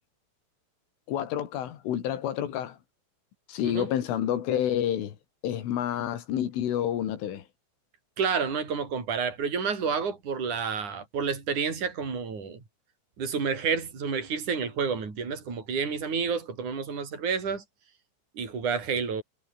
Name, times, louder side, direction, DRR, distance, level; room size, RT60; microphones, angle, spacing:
voice 1, 1.1-2.8 3.5-5.2 5.4-7.4, left 10 dB, 75° left, 4.9 m, -29 dB
voice 2, 8.2-12.6 13.2-17.6 18.4-19.2, right 6 dB, 40° right, 7.2 m, -29 dB
omnidirectional pair, 5.8 m